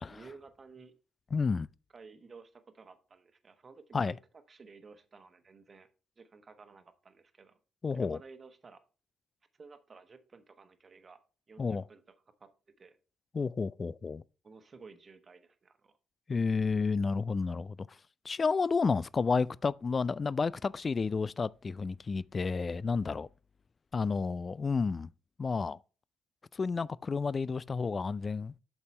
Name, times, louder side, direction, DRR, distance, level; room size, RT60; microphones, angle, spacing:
voice 1, 0.1-0.9 1.9-4.2 4.5-5.9 6.2-7.6 7.9-8.8 9.6-11.2 11.5-12.0 12.4-12.5 12.8-13.0 14.4-15.9, right 4 dB, 35° right, 1.1 m, -54 dB
voice 2, 1.3-1.7 3.9-4.1 7.8-8.2 11.6-11.8 13.3-14.2 16.3-17.8 18.3-23.3 23.9-25.1 25.4-25.8 26.5-28.6, left 4 dB, 35° left, 0.3 m, -31 dB
8.1 x 6.9 x 3.2 m
figure-of-eight pair, 45°, 0 cm